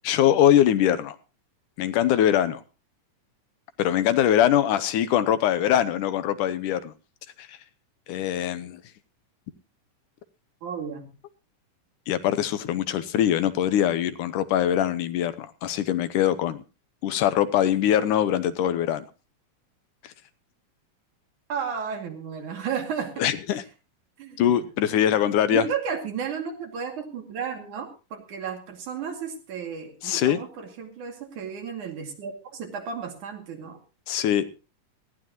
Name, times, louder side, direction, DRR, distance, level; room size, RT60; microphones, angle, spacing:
voice 1, 0.1-1.2 1.8-2.6 3.8-6.9 7.4-7.6 8.1-8.8 12.1-16.6 17.0-19.1 23.2-23.6 24.4-25.6 30.0-30.4 34.1-34.5, left 11 dB, 75° left, 13 dB, 2.4 m, -22 dB
voice 2, 10.6-11.1 21.5-23.3 24.2-24.7 25.5-33.8, right 7 dB, 65° right, 4 dB, 3.8 m, -33 dB
19.0 x 15.0 x 2.9 m, 0.31 s
omnidirectional pair, 3.8 m